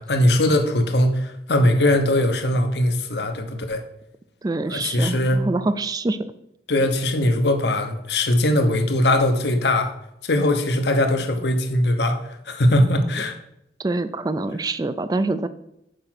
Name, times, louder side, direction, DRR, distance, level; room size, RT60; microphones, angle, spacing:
voice 1, 0.0-3.8 4.6-5.4 6.7-9.9 10.2-13.4, left 1 dB, 70° left, 6 dB, 1.0 m, -20 dB
voice 2, 4.4-6.3 13.8-15.5, right 2 dB, 20° right, 13 dB, 0.3 m, -25 dB
6.7 x 4.9 x 5.9 m, 0.80 s
head